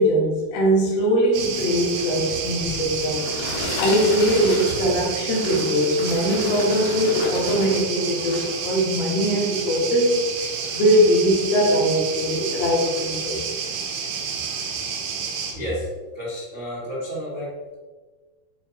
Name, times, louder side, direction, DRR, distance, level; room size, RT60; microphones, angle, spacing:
voice 1, 0.0-3.3 3.8-10.2 10.7-13.4, equal, 75° left, -3 dB, 3.4 m, -21 dB
sound 1, 1.3-15.5, right 6 dB, 80° right, 2.8 m, -30 dB
sound 2, 2.8-7.9 8.2-8.6 9.2-9.3, left 2 dB, 90° left, 3.3 m, -31 dB
voice 2, 15.5-15.9 16.1-17.7, equal, 65° right, -7 dB, 0.7 m, -31 dB
9.9 x 4.7 x 3.2 m, 1.4 s
omnidirectional pair, 4.4 m